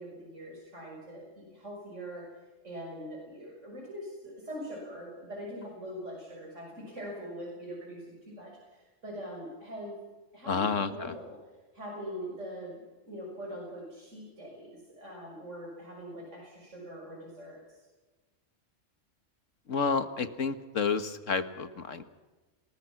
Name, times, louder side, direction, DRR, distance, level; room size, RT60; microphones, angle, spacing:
voice 1, 0.0-2.3 2.6-9.9 10.3-11.4 11.7-12.8 13.0-17.6, equal, 75° right, -1 dB, 6.6 m, -42 dB
voice 2, 10.5-11.1 19.7-22.0, left 5 dB, 90° left, 11 dB, 1.9 m, -30 dB
29.0 x 21.0 x 6.0 m, 1.2 s
omnidirectional pair, 1.3 m